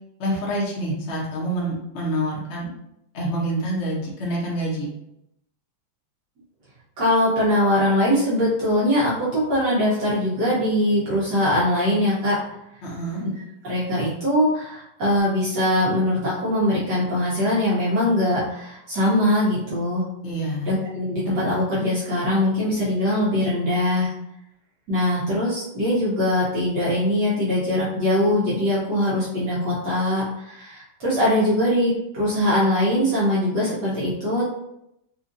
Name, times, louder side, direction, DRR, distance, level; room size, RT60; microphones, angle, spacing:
voice 1, 0.2-2.7 3.1-4.9 12.8-13.3 20.2-20.7, right 1 dB, 45° left, -4 dB, 1.0 m, -27 dB
voice 2, 7.0-12.3 13.6-20.0 20.7-24.1 24.9-34.5, left 1 dB, 65° right, -8 dB, 1.5 m, -22 dB
4.3 x 2.4 x 2.6 m, 0.80 s
omnidirectional pair, 2.0 m